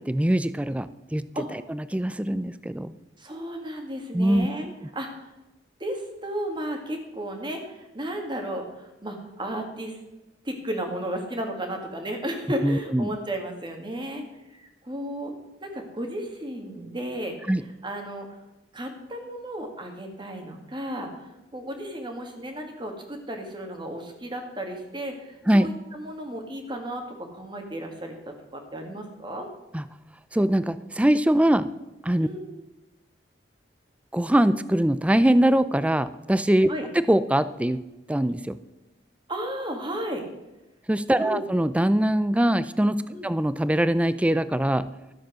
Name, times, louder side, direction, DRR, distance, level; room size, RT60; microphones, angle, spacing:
voice 1, 0.0-1.2 1.7-2.9 4.1-4.5 12.6-13.1 17.5-17.6 25.5-25.7 29.7-29.8 30.3-31.7 32.0-32.3 34.1-36.7 37.1-37.8 38.1-38.6 40.9-44.9, right 1 dB, 5° right, 14 dB, 0.4 m, -22 dB
voice 2, 3.2-4.7 4.9-5.3 5.8-10.0 10.4-14.2 14.5-15.3 15.6-18.3 18.7-29.5 32.2-32.6 36.7-36.9 39.3-40.2 41.2-41.5 43.1-43.3, right 1 dB, 25° right, 4 dB, 1.9 m, -34 dB
13.0 x 7.5 x 6.2 m, 0.98 s
head